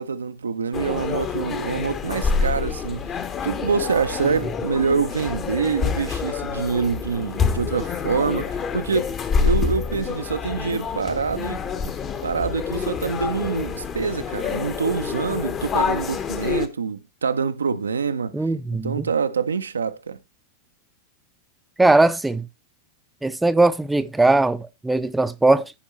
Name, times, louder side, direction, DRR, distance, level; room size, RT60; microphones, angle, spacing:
voice 1, 0.0-3.1 3.4-11.6 12.2-18.4 18.8-20.2, right 5 dB, 75° right, 0.6 m, -25 dB
sound 1, 0.7-16.7, left 5 dB, 25° left, 1.0 m, -27 dB
voice 2, 18.3-19.1 21.8-22.5 23.2-25.7, right 2 dB, 5° right, 0.6 m, -19 dB
14.0 x 5.2 x 3.0 m
figure-of-eight pair, 90°, 0 cm